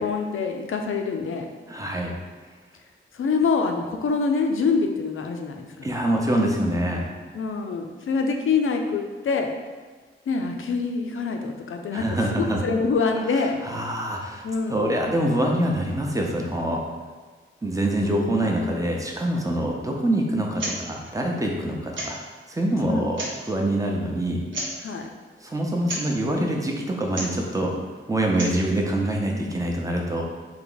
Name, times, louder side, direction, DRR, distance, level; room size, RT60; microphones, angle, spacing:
voice 1, 0.0-1.5 3.1-5.9 7.3-9.5 10.3-13.6 14.4-14.9 18.1-18.5 22.8-23.1 24.8-25.1, left 4 dB, 75° left, 4 dB, 0.5 m, -25 dB
voice 2, 1.7-2.1 5.8-7.1 11.9-12.6 13.6-14.4 14.7-16.8 17.6-22.2 22.5-24.4 25.4-27.7 28.1-30.2, right 1 dB, 15° right, 0 dB, 0.7 m, -25 dB
sound 1, 20.5-20.8 21.0-21.1 21.9-22.3 23.0-23.5 24.5-24.8 25.8-26.1 27.1-27.4 28.2-28.6, right 1 dB, 65° right, 0.9 m, -32 dB
3.4 x 2.9 x 3.9 m, 1.4 s
wide cardioid pair, 90°, 21 cm